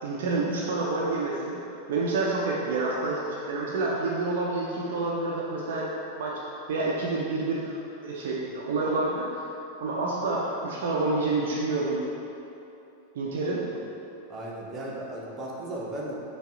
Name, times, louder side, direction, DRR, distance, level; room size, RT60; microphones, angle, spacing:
voice 1, 0.0-1.6 1.9-5.9 6.2-6.4 6.7-9.3 9.8-12.0 13.2-13.6, right 3 dB, 55° right, -4 dB, 0.5 m, -28 dB
voice 2, 14.3-16.1, right 1 dB, 25° right, -4 dB, 0.8 m, -36 dB
5.4 x 2.3 x 3.6 m, 2.9 s
figure-of-eight pair, 90°, 0 cm